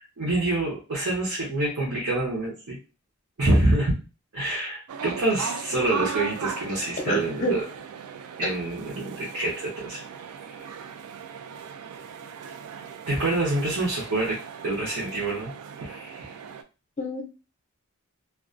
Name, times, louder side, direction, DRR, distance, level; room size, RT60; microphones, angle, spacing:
voice 1, 0.0-2.8 3.4-4.0 4.3-7.6 8.4-10.0 10.5-10.6 13.1-14.4 14.6-15.5 15.8-16.3, right 2 dB, 65° right, -5 dB, 0.7 m, -26 dB
sound 1, 4.9-16.6, right 7 dB, 85° right, 0.3 m, -38 dB
voice 2, 7.1-7.6 8.4-8.5 17.0-17.2, equal, 35° left, 2 dB, 0.5 m, -27 dB
2.3 x 2.3 x 2.4 m, 0.32 s
head